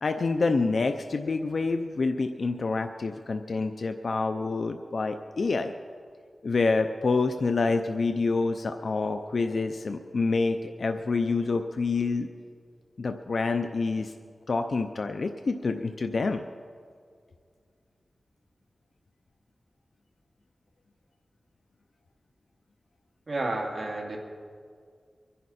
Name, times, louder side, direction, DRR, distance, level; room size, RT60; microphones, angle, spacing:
voice 1, 0.0-5.7 6.4-12.3 13.0-14.1 14.5-16.4, left 3 dB, 65° left, 6 dB, 0.6 m, -27 dB
voice 2, 23.3-24.2, right 2 dB, 50° right, 0 dB, 2.6 m, -31 dB
23.5 x 11.0 x 4.2 m, 2.1 s
wide cardioid pair, 65°, 0 cm